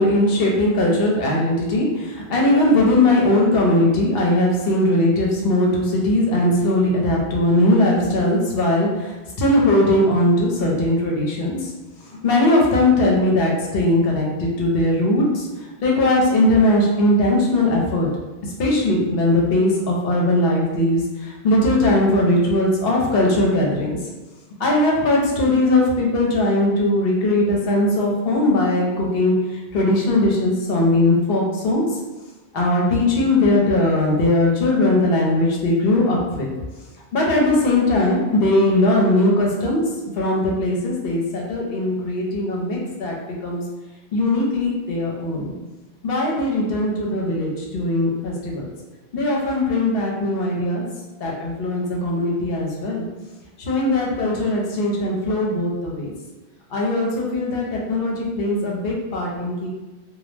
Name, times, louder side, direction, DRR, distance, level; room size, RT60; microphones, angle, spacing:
voice 1, 0.0-11.7 12.1-15.5 15.8-18.1 18.6-23.9 24.6-32.0 32.5-36.5 37.1-39.8 40.2-43.1 43.4-43.6 44.1-45.5 46.0-48.7 49.1-50.8 51.2-53.1 53.6-56.1 56.7-59.7, left 1 dB, 65° left, -2 dB, 0.8 m, -19 dB
2.2 x 2.0 x 3.0 m, 1.2 s
omnidirectional pair, 1.1 m